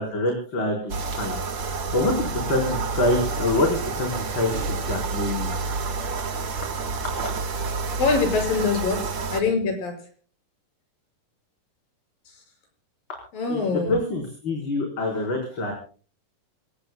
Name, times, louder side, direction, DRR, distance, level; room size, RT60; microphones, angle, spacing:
voice 1, 0.0-5.5 6.5-6.7 13.5-15.7, left 2 dB, 35° left, 1 dB, 4.9 m, -26 dB
sound 1, 0.9-9.4, right 4 dB, 40° right, 1.9 m, -29 dB
voice 2, 8.0-10.0 13.3-13.9, left 4 dB, 80° left, 4 dB, 7.7 m, -24 dB
26.5 x 18.5 x 2.3 m, 0.39 s
omnidirectional pair, 4.0 m